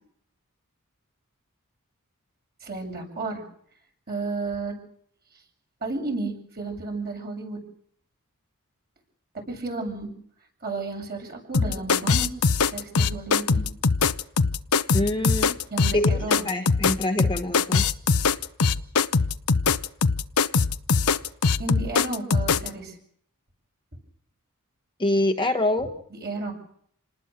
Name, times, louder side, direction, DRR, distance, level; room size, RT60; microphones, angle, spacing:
voice 1, 2.6-3.4 4.1-4.7 5.8-7.6 9.5-10.1 10.6-12.3 12.7-13.6 15.7-16.5 21.6-22.9 26.1-26.5, right 3 dB, 45° right, 2 dB, 7.6 m, -32 dB
sound 1, 11.5-22.7, left 5 dB, 80° left, 0.9 m, -22 dB
voice 2, 14.9-15.6 15.9-17.9 25.0-25.9, left 1 dB, 20° left, 5 dB, 1.3 m, -25 dB
28.5 x 20.0 x 6.4 m, 0.66 s
head